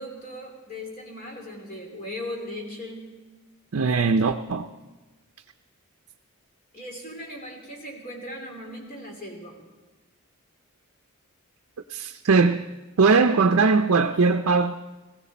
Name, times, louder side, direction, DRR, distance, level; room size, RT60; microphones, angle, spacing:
voice 1, 0.0-3.0 6.7-9.6, left 1 dB, 40° left, 1 dB, 2.9 m, -38 dB
voice 2, 3.7-4.7 11.9-12.7 13.0-14.8, right 4 dB, 65° right, 7 dB, 0.5 m, -20 dB
18.0 x 15.5 x 4.2 m, 1.2 s
head